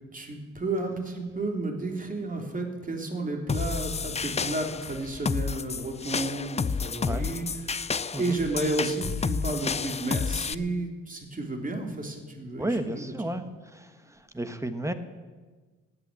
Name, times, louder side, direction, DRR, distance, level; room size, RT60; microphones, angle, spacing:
voice 1, 0.1-13.3, right 2 dB, 25° right, 3 dB, 3.0 m, -32 dB
sound 1, 3.5-10.5, left 5 dB, 20° left, 0.5 m, -31 dB
voice 2, 12.6-14.9, right 1 dB, 10° right, 9 dB, 1.3 m, -33 dB
13.5 x 9.0 x 9.5 m, 1.4 s
cardioid pair, 90°, 30 cm